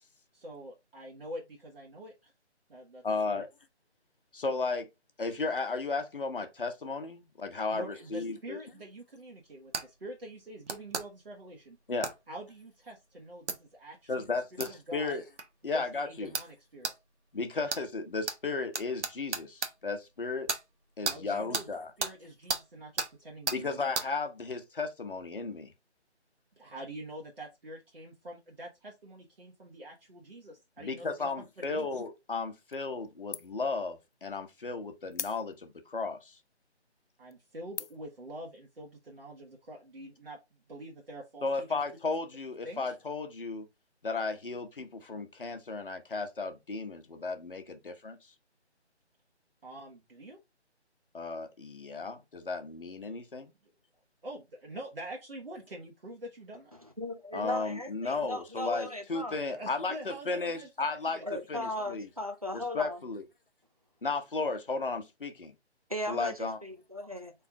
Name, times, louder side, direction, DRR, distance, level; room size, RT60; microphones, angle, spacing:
voice 1, 0.3-2.3 2.7-3.4 7.7-11.8 12.3-14.3 14.6-15.2 15.7-16.9 21.0-21.7 22.0-23.8 26.6-31.9 37.2-40.4 40.7-41.8 42.6-42.8 49.6-50.4 54.2-56.8 59.5-61.2 61.6-62.1, right 1 dB, 55° right, 1.4 m, -46 dB
voice 2, 3.0-3.5 4.3-4.9 5.2-8.6 11.9-12.1 14.1-15.2 15.6-16.3 17.3-20.5 21.0-21.9 23.5-25.7 30.8-36.4 41.4-43.7 44.0-48.2 51.1-53.5 57.3-61.2 61.5-62.1 62.5-63.2 64.0-65.5 66.1-66.6, left 3 dB, 50° left, 1.0 m, -34 dB
sound 1, 9.7-9.9 10.7-11.1 12.0-12.2 13.5-13.6 14.6-14.7 15.4-15.5 16.3-16.5 16.8-17.0 17.7-17.8 18.3-18.4 18.7-19.7 20.5-20.6 21.1-21.2 21.5-21.7 22.0-22.1 22.5-22.6 23.0-23.1 23.5-23.6 24.0-24.1, right 4 dB, 80° right, 1.1 m, -33 dB
sound 2, 32.7-33.1 33.3-33.7 34.1-34.2 35.1-35.8 36.5-36.6 37.1-37.3 37.7-38.2, left 7 dB, 75° left, 0.5 m, -40 dB
voice 3, 56.8-59.4 61.2-63.0 65.9-67.3, left 1 dB, 35° right, 0.5 m, -37 dB
4.5 x 3.5 x 3.4 m
figure-of-eight pair, 175°, 34 cm